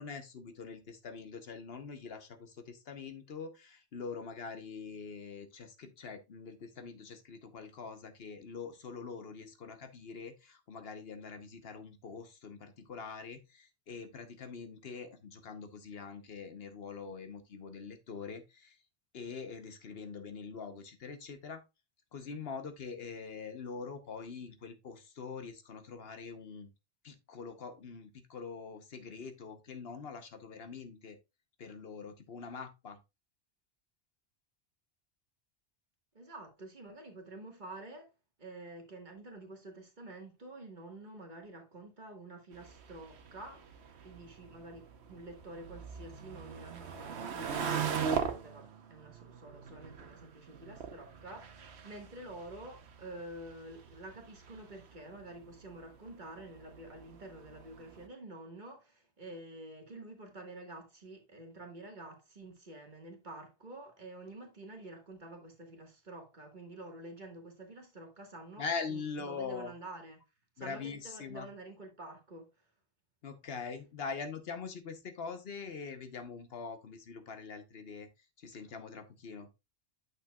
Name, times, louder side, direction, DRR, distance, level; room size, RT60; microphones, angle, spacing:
voice 1, 0.0-18.8 19.1-21.6 22.1-26.7 27.0-31.2 31.6-33.0 68.6-69.7 70.6-71.5 73.2-79.5, left 5 dB, 65° left, 1.1 m, -43 dB
voice 2, 36.1-38.1 38.4-70.2 70.6-72.5, right 2 dB, 45° right, 1.6 m, -49 dB
sound 1, 42.5-58.1, right 7 dB, 70° right, 1.1 m, -41 dB
8.7 x 6.5 x 2.3 m
omnidirectional pair, 1.1 m